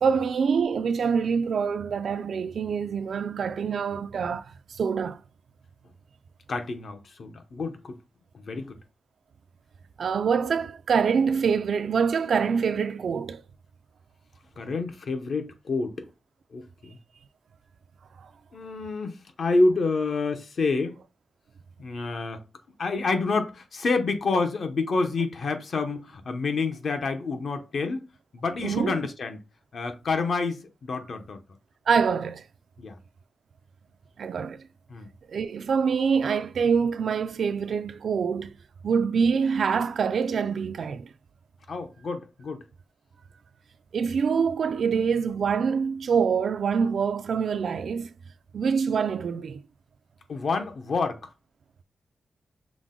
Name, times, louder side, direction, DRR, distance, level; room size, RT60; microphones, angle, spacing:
voice 1, 0.0-4.5 4.8-5.2 10.0-13.4 18.2-18.3 28.6-29.0 31.9-32.4 34.2-34.6 35.3-38.6 38.8-41.1 43.9-48.1 48.5-49.6, right 6 dB, 70° right, 0.3 m, -25 dB
voice 2, 6.5-8.0 8.3-8.7 14.6-16.1 16.5-17.0 18.5-21.0 21.8-22.4 22.8-28.0 28.3-29.4 29.7-31.4 32.8-33.0 34.9-35.1 41.7-42.6 50.3-51.2, left 3 dB, 55° left, 0.7 m, -28 dB
5.9 x 2.1 x 3.7 m
wide cardioid pair, 150°, 0 cm